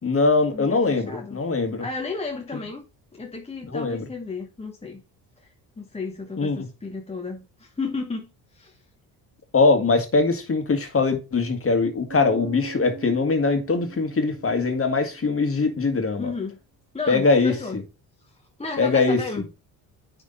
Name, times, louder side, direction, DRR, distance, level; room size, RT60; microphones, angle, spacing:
voice 1, 0.0-1.8 3.7-4.1 6.4-6.7 9.5-16.3 17.1-17.5 18.8-19.2, left 3 dB, 30° left, 1.8 m, -22 dB
voice 2, 0.5-1.4 1.8-2.8 3.1-5.0 5.4-5.5 5.8-8.8 16.2-16.6 16.9-17.8 18.6-19.5, left 4 dB, 15° left, 1.0 m, -33 dB
Bass guitar, 12.1-15.7, right 5 dB, 65° right, 1.8 m, -41 dB
9.6 x 3.6 x 3.9 m
supercardioid pair, 80°, 44 cm